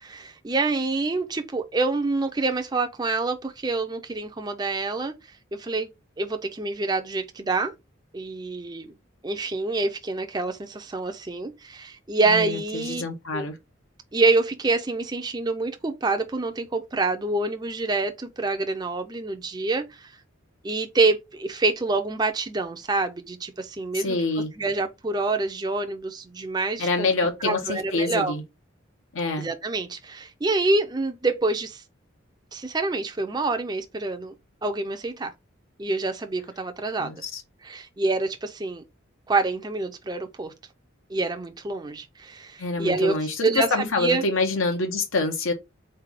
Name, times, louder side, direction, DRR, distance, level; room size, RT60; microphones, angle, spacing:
voice 1, 0.0-5.1 5.5-5.9 6.2-7.7 8.1-8.9 9.2-13.0 13.3-13.5 14.1-20.1 20.6-24.2 24.6-27.1 27.4-28.3 29.4-31.8 32.5-34.3 34.6-35.3 35.8-37.1 37.6-38.8 39.3-40.5 41.1-43.2 43.4-44.3, right 3 dB, 20° right, 0.5 m, -26 dB
voice 2, 12.3-13.6 23.9-24.5 26.8-28.4 29.1-29.5 37.0-37.4 42.6-45.5, left 3 dB, 80° left, 1.0 m, -26 dB
4.1 x 3.3 x 3.5 m
head